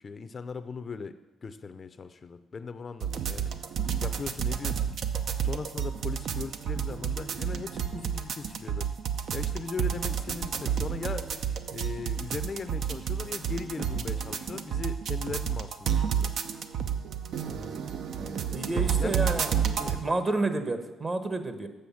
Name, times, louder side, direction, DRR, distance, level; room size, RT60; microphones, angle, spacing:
voice 1, 0.0-3.5 4.0-4.9 5.4-8.9 9.3-11.3 11.7-16.4 18.4-19.2 19.8-20.0, left 4 dB, 40° left, 11 dB, 0.5 m, -39 dB
sound 1, 3.0-20.0, right 8 dB, 70° right, 0.7 m, -30 dB
voice 2, 17.5-17.8 18.2-19.5 19.9-21.7, right 2 dB, 30° right, 8 dB, 1.1 m, -30 dB
7.8 x 6.6 x 7.1 m, 1.1 s
cardioid pair, 90°, 0 cm